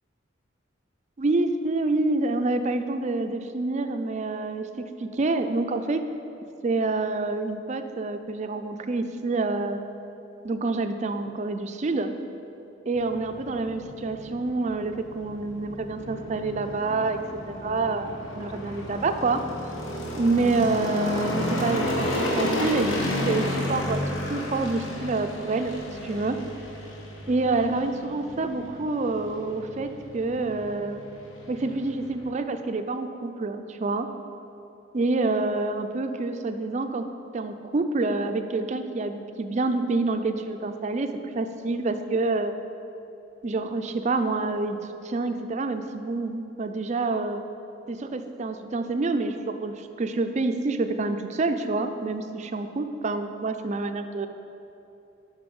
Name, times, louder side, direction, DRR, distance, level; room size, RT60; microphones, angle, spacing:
voice 1, 1.2-6.0 6.6-9.8 10.4-12.1 12.9-17.2 17.5-19.4 20.2-24.0 24.3-25.8 26.0-26.4 27.3-31.0 31.5-34.1 34.9-37.0 37.3-41.1 41.3-42.5 43.4-44.8 45.0-47.4 47.9-54.3, right 3 dB, 35° right, 8 dB, 0.4 m, -27 dB
sound 1, 12.9-32.3, left 1 dB, 90° left, 1.1 m, -32 dB
6.8 x 5.6 x 5.3 m, 2.8 s
head